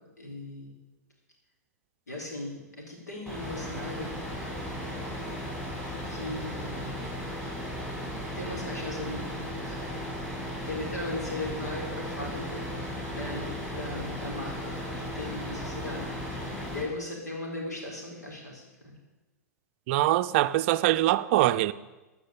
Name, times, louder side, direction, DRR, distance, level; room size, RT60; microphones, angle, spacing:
voice 1, 0.2-0.8 2.1-4.2 6.1-7.0 8.3-10.1 10.6-12.7 13.2-16.1 16.7-19.0, left 2 dB, 80° left, 4.2 m, -38 dB
sound 1, 3.3-16.8, equal, 10° left, 5.6 m, -36 dB
voice 2, 19.9-21.7, right 15 dB, 45° right, 0.5 m, -23 dB
14.0 x 6.1 x 8.7 m
figure-of-eight pair, 100°, 9 cm